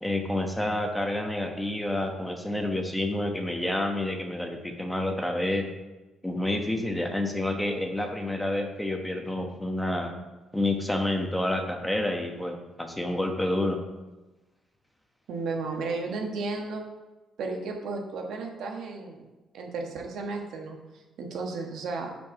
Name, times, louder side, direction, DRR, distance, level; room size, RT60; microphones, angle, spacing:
voice 1, 0.0-5.7 6.2-10.1 10.5-13.8, left 1 dB, 5° left, 3 dB, 1.0 m, -29 dB
voice 2, 15.3-16.9 17.4-19.2 19.5-22.1, right 3 dB, 75° right, 2 dB, 1.2 m, -34 dB
5.9 x 4.6 x 5.7 m, 1.1 s
cardioid pair, 90°, 0 cm